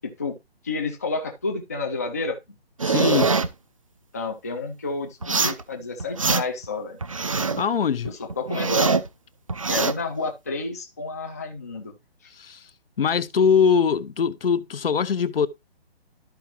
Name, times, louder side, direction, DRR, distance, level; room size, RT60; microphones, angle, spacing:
voice 1, 0.0-0.3 0.6-2.4 4.1-7.0 8.0-9.0 9.7-11.9, left 3 dB, 15° left, 0.5 m, -30 dB
voice 2, 2.8-3.3 7.6-8.1 12.4-12.6 13.0-15.5, left 6 dB, 60° left, 1.0 m, -22 dB
sound 1, 2.8-3.5 5.2-5.6 6.0-6.7 7.0-7.7 8.1-9.1 9.5-9.9, right 4 dB, 30° right, 0.4 m, -23 dB
13.0 x 5.0 x 3.0 m
hypercardioid pair, 170°, 32 cm